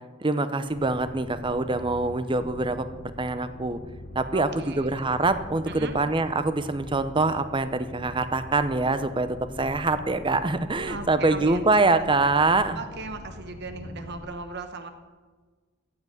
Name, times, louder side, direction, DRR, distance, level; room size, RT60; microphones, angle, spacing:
voice 1, 0.2-2.9 3.2-3.8 4.1-12.8, right 3 dB, 20° right, 11 dB, 0.7 m, -24 dB
sound 1, 0.6-14.3, equal, 45° left, 0.9 m, -43 dB
voice 2, 4.3-4.9 5.7-5.9 10.9-11.6 12.8-14.9, right 3 dB, 50° right, 8 dB, 1.1 m, -37 dB
14.5 x 5.9 x 9.1 m, 1.4 s
head